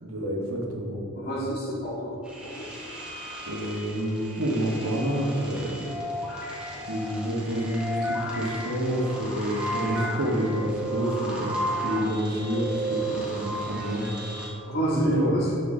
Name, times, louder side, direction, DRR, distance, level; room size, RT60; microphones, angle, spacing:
voice 1, 0.0-1.0 3.5-6.0 6.9-14.1 15.1-15.3, equal, 70° right, -1 dB, 1.5 m, -28 dB
voice 2, 1.2-2.7 14.7-15.6, right 1 dB, 45° left, -5 dB, 2.1 m, -28 dB
sound 1, 2.2-14.5, right 1 dB, 5° right, 1.6 m, -34 dB
10.5 x 6.9 x 3.7 m, 2.7 s
head